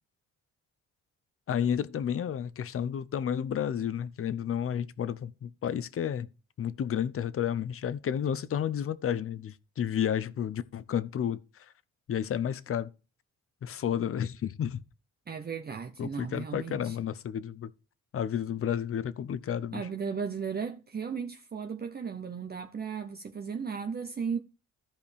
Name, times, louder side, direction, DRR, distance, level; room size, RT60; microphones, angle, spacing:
voice 1, 1.5-6.3 6.6-11.7 12.1-12.9 13.6-14.8 16.0-17.7 18.1-19.9, left 9 dB, 45° left, 0.7 m, -31 dB
voice 2, 15.3-17.0 19.7-24.4, right 6 dB, 30° right, 0.8 m, -35 dB
14.5 x 5.1 x 3.4 m
cardioid pair, 90°, 30 cm